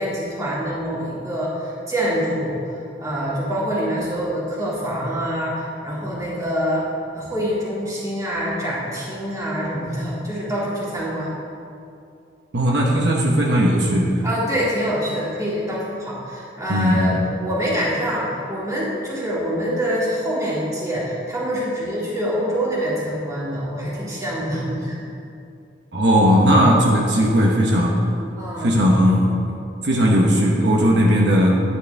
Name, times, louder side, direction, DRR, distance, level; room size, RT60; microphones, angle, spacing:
voice 1, 0.0-2.6 3.0-6.9 7.1-11.3 14.2-25.0 28.4-28.8, equal, 20° right, -7 dB, 2.4 m, -25 dB
voice 2, 12.5-14.2 16.7-17.2 25.9-28.0 28.6-29.6 29.8-31.6, equal, 70° right, -2 dB, 1.2 m, -17 dB
11.0 x 9.8 x 3.5 m, 2.6 s
head